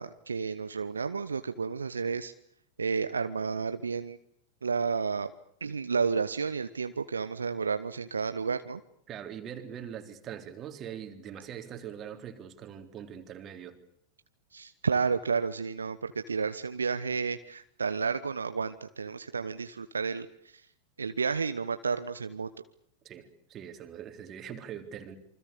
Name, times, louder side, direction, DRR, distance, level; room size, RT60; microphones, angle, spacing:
voice 1, 0.0-2.3 2.8-4.2 4.6-5.3 5.6-8.8 14.5-20.3 21.0-22.5, right 5 dB, 75° right, 11 dB, 1.1 m, -31 dB
voice 2, 9.1-13.8 23.0-25.2, right 9 dB, 30° right, 6 dB, 3.8 m, -42 dB
28.0 x 25.5 x 6.9 m, 0.69 s
figure-of-eight pair, 90°, 0 cm